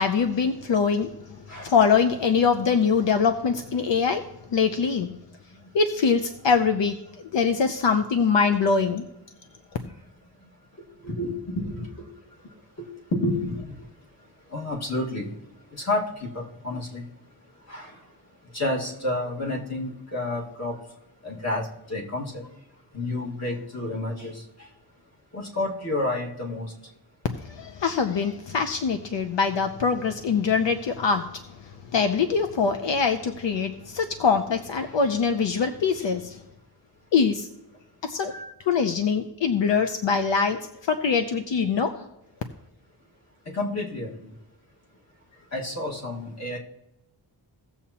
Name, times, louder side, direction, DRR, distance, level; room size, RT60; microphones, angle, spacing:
voice 1, 0.0-4.2 4.5-5.2 5.7-7.0 7.3-9.1 27.3-36.4 37.1-37.5 38.0-38.3 38.7-42.1, left 5 dB, 75° left, 0.7 m, -23 dB
voice 2, 11.0-11.9 12.8-13.6 14.5-15.3 15.7-17.1 17.7-17.9 18.5-20.7 21.2-22.5 22.9-24.4 25.3-26.7 38.3-38.5 43.5-44.1 45.5-46.6, left 2 dB, 35° left, 1.8 m, -30 dB
17.0 x 7.2 x 2.9 m
wide cardioid pair, 175°, 44 cm